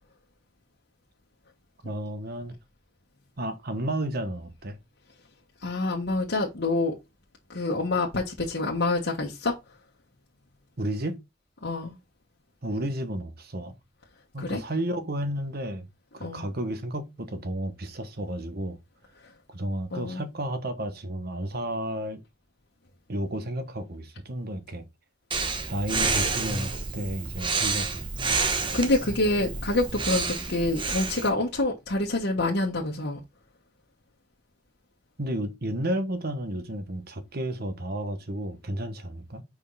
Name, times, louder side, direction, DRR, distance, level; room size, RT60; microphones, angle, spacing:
voice 1, 1.8-2.6 3.4-4.8 10.8-11.2 12.6-13.7 14.3-15.9 16.1-18.8 19.5-22.2 23.1-24.8 25.7-28.1 35.2-39.4, right 1 dB, 55° right, 1.2 m, -32 dB
voice 2, 5.6-6.9 7.5-9.5 11.6-12.0 14.4-14.6 16.2-16.4 19.9-20.2 28.5-33.2, left 2 dB, 60° left, 1.3 m, -27 dB
Breathing, 25.3-31.3, right 4 dB, 25° right, 1.0 m, -29 dB
5.5 x 4.8 x 4.0 m
head